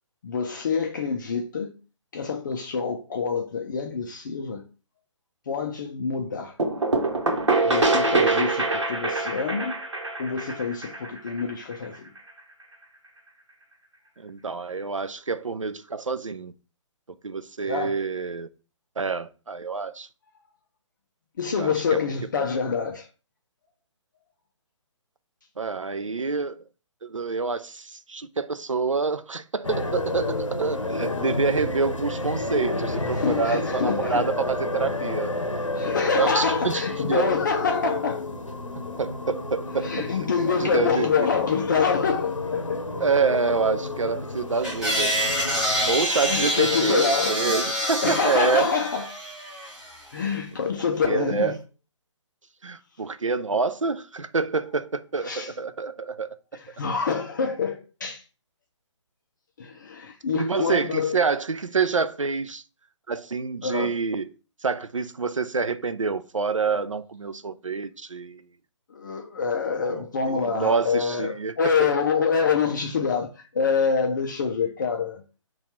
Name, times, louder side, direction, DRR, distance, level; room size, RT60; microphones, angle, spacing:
voice 1, 0.2-1.8 2.1-4.7 5.5-6.6 7.7-9.8 10.2-12.1 17.6-18.0 21.4-23.1 33.1-34.3 35.8-38.2 39.8-42.8 46.3-49.1 50.1-51.6 55.2-55.5 56.5-58.2 59.6-61.2 63.6-64.0 68.9-75.2, left 5 dB, 40° left, 0.4 m, -26 dB
sound 1, 6.6-12.2, right 3 dB, 65° right, 0.9 m, -24 dB
voice 2, 14.2-16.5 17.2-18.5 19.0-20.1 21.6-22.0 22.4-22.5 25.6-26.6 27.0-35.4 36.1-36.8 37.1-37.3 39.0-40.1 40.5-41.3 43.0-48.8 51.1-51.6 52.6-56.4 60.3-62.6 63.1-64.3 64.6-68.4 69.8-71.5 71.8-72.0, right 4 dB, 85° right, 0.4 m, -27 dB
sound 2, 29.6-46.0, left 2 dB, 80° left, 0.7 m, -30 dB
sound 3, 44.6-50.0, equal, 5° right, 0.8 m, -27 dB
4.1 x 2.3 x 4.2 m
figure-of-eight pair, 135°, 16 cm